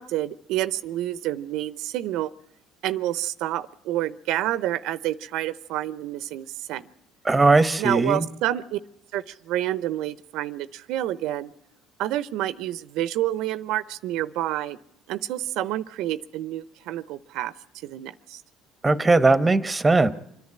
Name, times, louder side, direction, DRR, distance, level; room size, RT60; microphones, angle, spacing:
voice 1, 0.0-2.3 2.8-6.9 7.8-8.8 9.1-11.5 12.0-14.8 15.1-17.5 17.8-18.4, right 13 dB, 75° right, 0.7 m, -28 dB
voice 2, 7.2-8.2 18.8-20.1, right 3 dB, 15° right, 1.2 m, -19 dB
26.5 x 10.5 x 9.7 m
cardioid pair, 110°, 0 cm